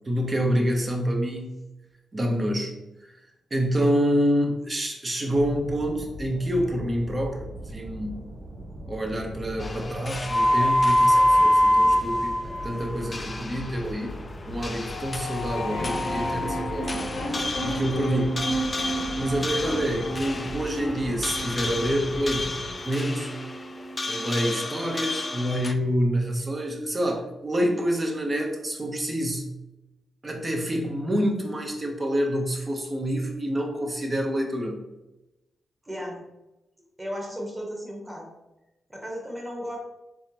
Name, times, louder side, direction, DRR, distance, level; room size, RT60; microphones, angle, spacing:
voice 1, 0.1-1.6 2.1-2.8 3.0-3.1 3.5-8.2 8.9-12.4 12.6-14.2 14.4-17.0 17.6-18.5 19.1-22.5 22.9-23.3 24.1-29.5 30.2-34.8, equal, 30° right, 1 dB, 0.8 m, -27 dB
sound 1, 5.2-22.7, equal, 85° right, 1.3 m, -40 dB
sound 2, 9.6-25.7, left 1 dB, 35° left, 0.3 m, -27 dB
sound 3, 15.5-25.8, right 1 dB, 85° left, 0.9 m, -34 dB
voice 2, 35.8-36.2 37.0-38.2 38.9-39.8, equal, 15° right, -2 dB, 1.3 m, -35 dB
3.5 x 3.3 x 2.9 m, 0.98 s
cardioid pair, 65°, 0 cm